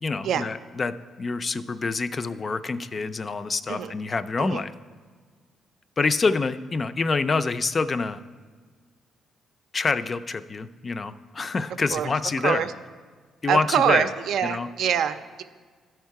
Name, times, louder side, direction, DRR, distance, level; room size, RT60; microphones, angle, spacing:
voice 1, 0.0-4.7 6.0-8.2 9.7-12.6 13.4-14.1 14.4-14.7, left 4 dB, 35° left, 12 dB, 0.3 m, -26 dB
voice 2, 13.5-15.4, right 8 dB, 75° right, 10 dB, 0.5 m, -24 dB
12.0 x 4.5 x 4.7 m, 1.5 s
cardioid pair, 90°, 0 cm